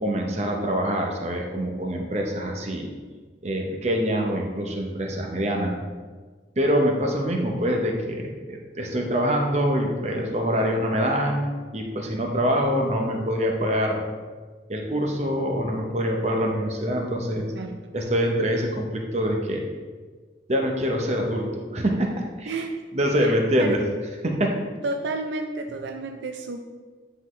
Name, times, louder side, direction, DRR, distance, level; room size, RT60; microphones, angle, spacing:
voice 1, 0.0-2.9 3.4-5.8 6.6-11.5 11.7-14.0 14.7-17.5 17.9-19.6 20.5-22.1 22.4-22.5 22.9-23.8 24.2-24.5, equal, 35° right, 1 dB, 0.8 m, -25 dB
voice 2, 23.2-23.8 24.8-26.6, right 3 dB, 75° right, 4 dB, 0.5 m, -31 dB
9.8 x 3.9 x 3.1 m, 1.4 s
head